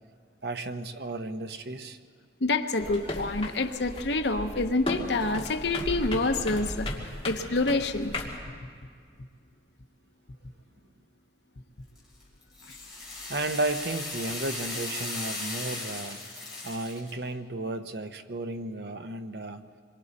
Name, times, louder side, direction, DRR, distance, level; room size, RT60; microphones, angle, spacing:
voice 1, 0.4-2.0 13.3-16.2 16.6-19.6, right 2 dB, 65° right, 8 dB, 0.9 m, -33 dB
voice 2, 2.4-6.9 7.2-8.1, left 2 dB, 70° left, 6 dB, 1.0 m, -27 dB
sound 1, 2.8-8.4, left 1 dB, 30° left, 2.5 m, -36 dB
sound 2, 12.0-17.1, left 2 dB, 5° right, 4.2 m, -37 dB
26.5 x 23.0 x 4.2 m, 2.1 s
head